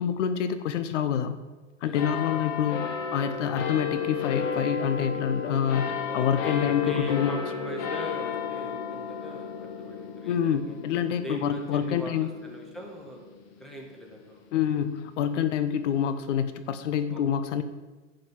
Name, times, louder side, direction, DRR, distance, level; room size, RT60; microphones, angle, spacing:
voice 1, 0.0-1.4 1.8-7.4 10.3-12.3 14.5-17.6, left 8 dB, 70° left, 11 dB, 0.9 m, -27 dB
voice 2, 1.8-2.5 6.1-10.7 11.2-13.3 13.6-14.4 17.1-17.2, equal, ahead, -1 dB, 1.7 m, -41 dB
sound 1, 1.9-14.8 15.5-15.6, left 7 dB, 55° left, 1.7 m, -34 dB
10.5 x 5.2 x 7.4 m, 1.2 s
supercardioid pair, 150°, 37 cm